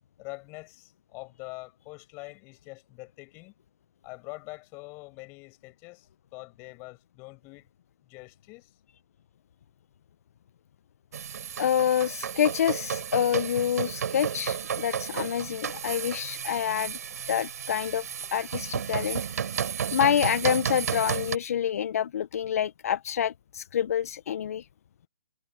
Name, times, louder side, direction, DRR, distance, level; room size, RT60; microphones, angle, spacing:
voice 1, 0.2-3.5 4.0-7.7 8.1-8.7, left 26 dB, 25° left, 7.4 m, -44 dB
sound 1, 11.1-21.4, right 8 dB, 65° right, 7.7 m, -33 dB
voice 2, 11.6-17.0 17.3-19.2 19.9-24.6, left 9 dB, 55° left, 0.9 m, -27 dB
hypercardioid pair, 150°, 9 cm